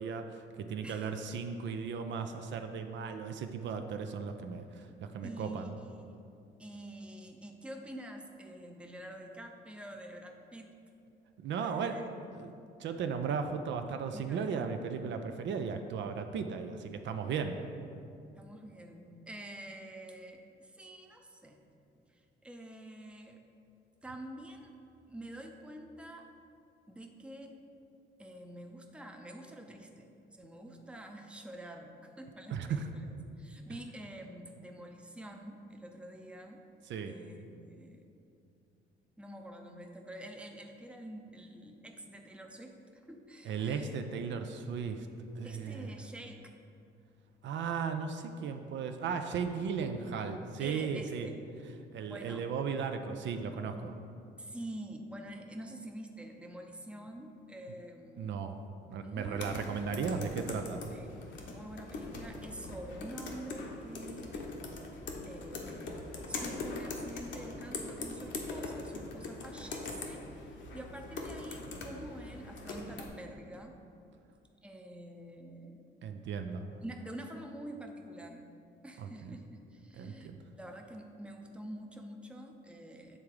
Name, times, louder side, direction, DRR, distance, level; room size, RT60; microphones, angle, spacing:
voice 1, 0.0-5.7 11.4-12.0 12.3-12.5 12.8-17.6 32.5-32.8 36.9-37.1 43.5-45.1 45.4-45.9 47.4-51.3 51.9-53.9 58.2-58.6 58.9-60.8 76.0-76.6 79.0-79.4 80.0-80.4, right 6 dB, 65° right, 6 dB, 0.5 m, -36 dB
voice 2, 0.8-1.1 5.2-6.2 6.6-10.8 11.5-12.1 12.5-12.6 14.1-14.8 18.3-21.6 22.1-23.4 24.0-24.7 25.1-26.3 26.9-27.6 28.2-33.1 33.4-36.6 37.0-38.1 39.2-44.0 45.4-46.5 50.6-51.4 52.0-52.5 54.4-58.4 59.0-59.8 60.9-64.3 65.2-66.0 66.3-73.8 74.6-75.8 76.8-78.4 78.8-83.2, right 1 dB, 5° right, 3 dB, 0.6 m, -47 dB
sound 1, 59.3-73.1, left 3 dB, 70° left, 1.0 m, -42 dB
7.5 x 3.6 x 4.8 m, 2.6 s
cardioid pair, 90°, 20 cm